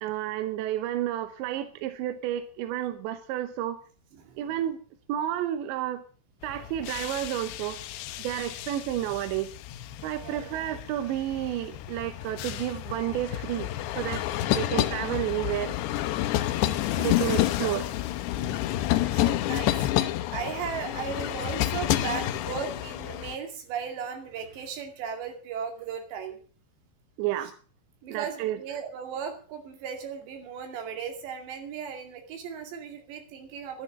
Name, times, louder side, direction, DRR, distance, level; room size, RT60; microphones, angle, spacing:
voice 1, 0.0-3.8 4.4-4.8 5.1-6.0 6.4-7.8 8.2-9.6 10.0-14.2 14.5-15.7 17.0-17.9 27.2-27.5 28.1-28.6, right 12 dB, 75° right, 9 dB, 2.8 m, -31 dB
sound 1, 6.4-23.4, left 14 dB, 85° left, 2.3 m, -30 dB
voice 2, 19.1-19.7 20.0-26.4 28.0-33.8, right 7 dB, 60° right, 4 dB, 4.3 m, -36 dB
12.0 x 11.0 x 6.4 m, 0.40 s
omnidirectional pair, 6.0 m